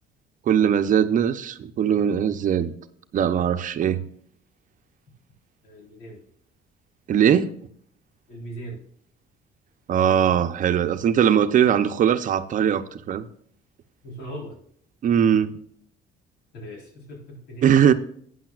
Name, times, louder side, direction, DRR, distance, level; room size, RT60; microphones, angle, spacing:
voice 1, 0.5-2.7 3.1-4.0 7.1-7.5 9.9-13.3 15.0-15.6 17.6-17.9, right 9 dB, 50° right, 0.7 m, -20 dB
voice 2, 5.6-6.2 8.3-8.8 14.0-14.6 16.5-17.7, right 1 dB, 90° left, 4.0 m, -39 dB
12.0 x 9.4 x 2.4 m
cardioid pair, 110°, 17 cm